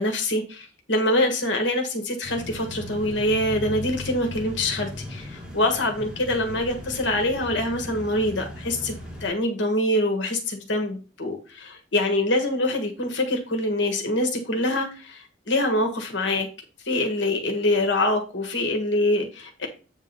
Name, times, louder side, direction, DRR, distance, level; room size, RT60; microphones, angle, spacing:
voice 1, 0.0-9.0 9.2-16.5 16.8-19.7, left 1 dB, 70° left, 1.4 m, -25 dB
sound 1, 2.2-9.3, left 2 dB, 5° right, 1.7 m, -37 dB
8.3 x 3.7 x 5.4 m
head